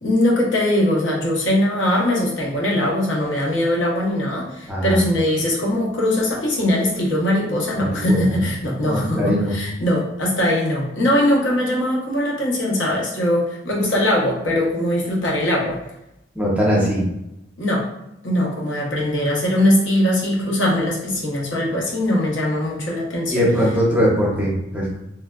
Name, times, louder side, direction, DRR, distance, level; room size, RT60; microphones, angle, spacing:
voice 1, 0.0-15.8 17.6-17.9 18.2-23.5, left 1 dB, 70° left, -3 dB, 0.8 m, -21 dB
voice 2, 4.7-5.0 7.8-8.2 8.8-9.5 16.3-17.1 23.3-24.9, equal, 10° right, -5 dB, 0.7 m, -20 dB
3.2 x 2.3 x 2.2 m, 0.86 s
head